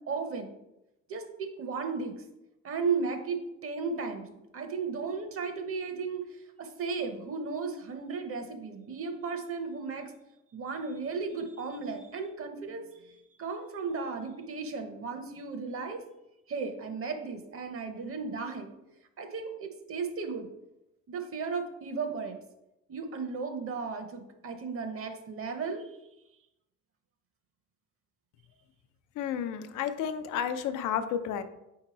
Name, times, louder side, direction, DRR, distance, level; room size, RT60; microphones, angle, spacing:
voice 1, 0.1-0.5 1.1-2.1 2.6-10.1 10.5-16.0 16.5-18.7 19.2-20.5 21.1-22.4 22.9-25.9, right 4 dB, 50° right, 6 dB, 0.7 m, -35 dB
voice 2, 29.2-31.4, left 8 dB, 90° left, 10 dB, 0.5 m, -31 dB
4.4 x 2.9 x 4.0 m, 0.89 s
cardioid pair, 90°, 30 cm